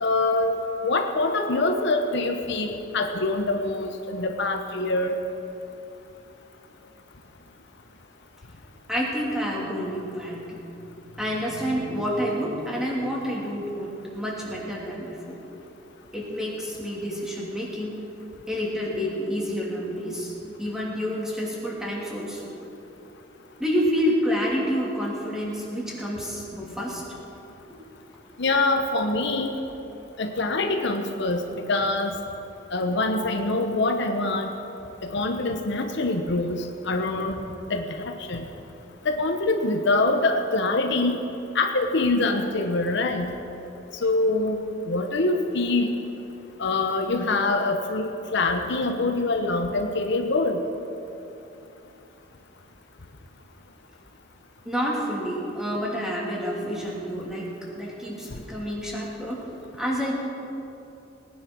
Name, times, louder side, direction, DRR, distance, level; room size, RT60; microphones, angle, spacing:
voice 1, 0.0-0.6 0.8-5.1 28.4-29.5 30.2-32.2 32.7-34.5 35.1-37.3 37.7-38.4 39.0-41.2 41.5-43.3 44.0-44.6 44.9-45.9 46.6-50.6, left 2 dB, 65° left, 5 dB, 1.0 m, -24 dB
voice 2, 8.9-10.6 11.1-15.4 16.1-17.9 18.5-20.3 20.6-22.5 23.6-27.0 28.9-29.0 54.6-57.5 57.7-59.4 59.7-60.1, equal, 5° right, -4 dB, 2.8 m, -28 dB
18.5 x 9.8 x 6.2 m, 3.0 s
head